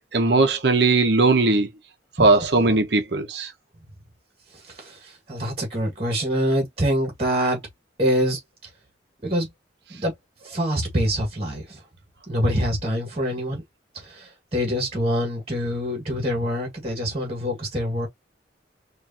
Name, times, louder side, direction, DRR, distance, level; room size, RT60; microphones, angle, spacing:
voice 1, 0.1-1.7 2.2-3.5, right 3 dB, 65° right, 0.9 m, -19 dB
voice 2, 5.3-7.6 8.0-8.4 9.2-9.5 10.0-10.1 10.4-11.6 12.3-13.6 14.5-18.1, equal, 35° right, 1.7 m, -24 dB
4.6 x 2.6 x 2.8 m
head